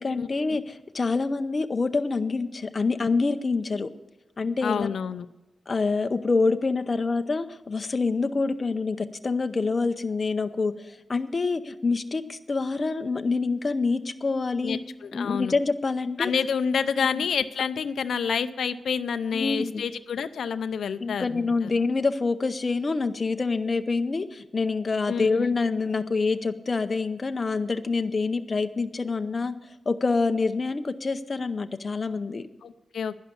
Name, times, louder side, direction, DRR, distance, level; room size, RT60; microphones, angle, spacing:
voice 1, 0.0-3.9 4.4-4.9 5.7-14.8 15.1-16.3 17.0-17.2 19.3-19.8 21.0-29.5 29.9-32.5, left 4 dB, 30° left, 8 dB, 0.7 m, -26 dB
voice 2, 4.6-5.3 14.6-15.5 16.2-21.4 25.1-25.5 32.6-33.2, left 6 dB, 85° left, 11 dB, 0.5 m, -28 dB
11.0 x 10.5 x 7.0 m, 1.0 s
wide cardioid pair, 150°, 0 cm